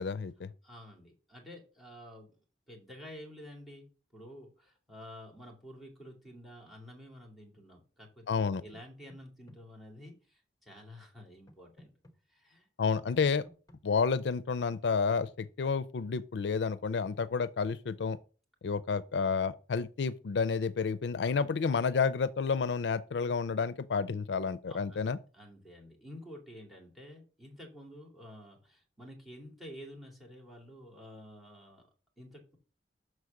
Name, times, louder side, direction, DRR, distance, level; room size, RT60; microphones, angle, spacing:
voice 1, 0.0-0.5 8.3-8.6 12.8-13.4 13.8-18.2 18.6-25.2, left 5 dB, 75° left, 0.4 m, -30 dB
voice 2, 0.6-2.4 2.7-11.9 12.3-12.7 24.7-25.0 25.3-31.8 32.2-32.6, equal, ahead, 2.5 m, -50 dB
sound 1, 8.7-9.6 11.5-12.1 13.2-13.8 14.7-15.3, equal, 20° left, 1.1 m, -56 dB
6.2 x 4.8 x 6.5 m
head